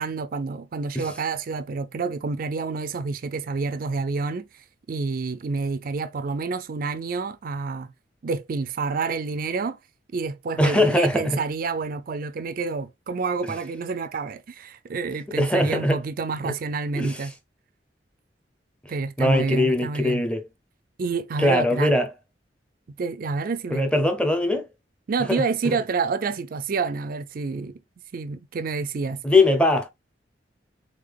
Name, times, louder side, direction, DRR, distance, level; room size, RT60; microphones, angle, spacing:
voice 1, 0.0-4.5 4.9-7.9 8.2-9.8 10.1-17.3 18.9-20.2 21.0-21.9 23.0-23.8 25.1-27.7 28.1-29.2, right 4 dB, 50° right, 0.4 m, -28 dB
voice 2, 10.6-11.4 15.4-16.0 16.4-16.5 17.0-17.2 19.2-20.4 21.4-22.1 23.7-24.7 25.3-25.8 29.2-29.9, left 1 dB, 5° left, 0.7 m, -21 dB
3.7 x 3.7 x 3.4 m
head